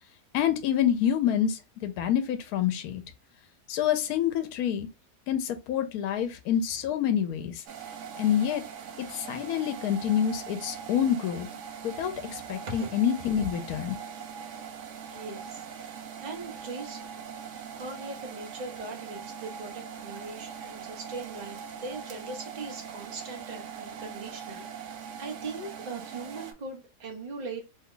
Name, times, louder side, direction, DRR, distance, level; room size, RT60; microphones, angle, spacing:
voice 1, 0.3-3.0 3.7-4.9 5.3-7.6 8.2-8.6 9.1-11.5 11.8-14.0, left 9 dB, 85° left, 1.1 m, -27 dB
sound 1, 7.7-26.5, right 7 dB, 65° right, 0.8 m, -41 dB
voice 2, 15.1-17.1 17.8-27.7, right 3 dB, 35° right, 0.9 m, -40 dB
3.0 x 2.2 x 3.7 m
omnidirectional pair, 1.6 m